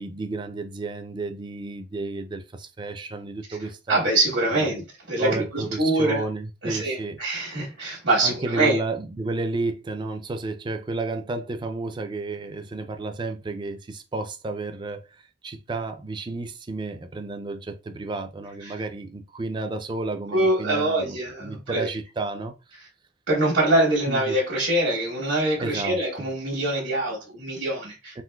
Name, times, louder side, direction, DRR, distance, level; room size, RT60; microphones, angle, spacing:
voice 1, 0.0-4.1 4.5-4.9 5.2-7.2 8.2-22.5 24.1-24.4 25.6-26.0 28.1-28.2, right 3 dB, 25° right, 0.4 m, -32 dB
voice 2, 3.9-6.2 6.6-8.8 18.6-18.7 20.3-21.9 23.3-28.2, right 1 dB, 75° right, 1.2 m, -24 dB
3.7 x 2.5 x 2.2 m
head